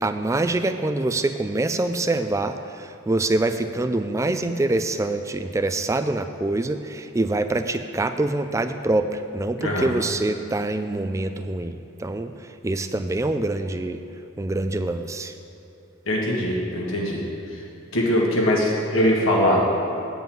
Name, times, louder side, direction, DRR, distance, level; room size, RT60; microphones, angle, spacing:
voice 1, 0.0-12.3 12.6-14.0 14.4-15.3, right 2 dB, 15° right, 9 dB, 0.3 m, -25 dB
voice 2, 9.6-9.9 16.0-17.2 17.5-17.6 17.9-19.6, equal, 70° left, -3 dB, 1.7 m, -21 dB
9.0 x 5.4 x 7.7 m, 3.0 s
head